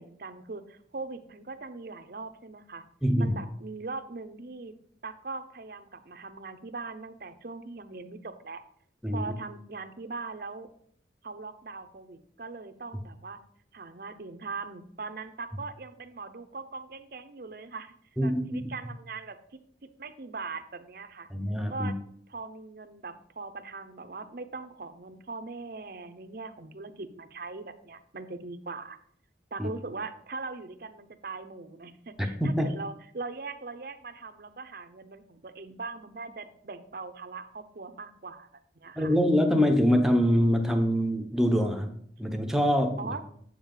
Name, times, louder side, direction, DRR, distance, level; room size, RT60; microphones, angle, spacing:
voice 1, 0.0-2.8 3.2-4.7 5.0-8.6 9.1-10.7 11.2-13.4 13.7-17.9 18.2-19.4 20.0-21.3 21.7-21.9 22.3-29.0 29.5-38.5 38.8-39.1 43.0-43.2, right 3 dB, 55° right, 9 dB, 0.7 m, -40 dB
voice 2, 3.0-3.4 9.0-9.3 18.2-18.6 21.3-21.9 29.6-29.7 32.2-32.7 39.0-41.9 42.2-43.2, equal, 5° right, 4 dB, 0.8 m, -24 dB
8.0 x 7.2 x 3.8 m, 0.64 s
head